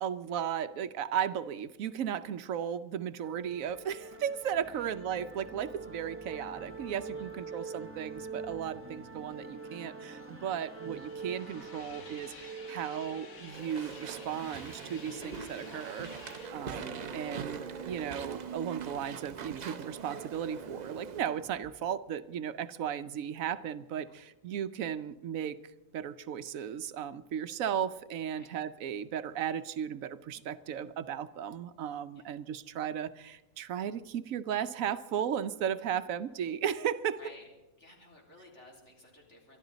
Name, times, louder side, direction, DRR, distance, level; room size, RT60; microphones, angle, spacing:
voice 1, 0.0-25.6 25.9-37.2, right 9 dB, 75° right, 12 dB, 1.1 m, -35 dB
sound 1, 3.2-21.9, right 4 dB, 10° right, 1.1 m, -47 dB
voice 2, 7.1-7.8 16.5-17.4 24.1-24.2 28.3-28.5 32.2-32.4 37.2-37.5 37.8-39.6, left 2 dB, 55° left, 0 dB, 3.6 m, -56 dB
sound 2, 9.3-16.5, left 5 dB, 80° left, 1.8 m, -52 dB
Walk footsteps / Chatter / Squeak, 13.5-21.2, right 6 dB, 45° right, 0.6 m, -42 dB
23.5 x 12.0 x 4.0 m, 1.0 s
omnidirectional pair, 1.5 m